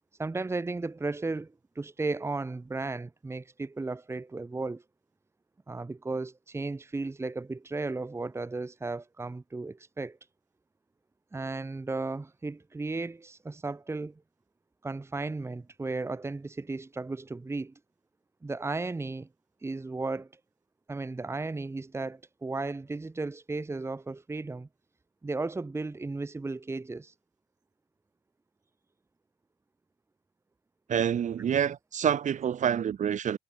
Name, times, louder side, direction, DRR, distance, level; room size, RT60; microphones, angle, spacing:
voice 1, 0.2-4.8 5.7-10.2 11.3-14.2 14.8-17.7 18.4-19.3 19.6-20.3 20.9-24.7 25.2-27.1, right 3 dB, 15° right, 1.8 m, -35 dB
voice 2, 30.9-33.4, right 8 dB, 45° right, 2.5 m, -27 dB
cardioid pair, 110°, 17 cm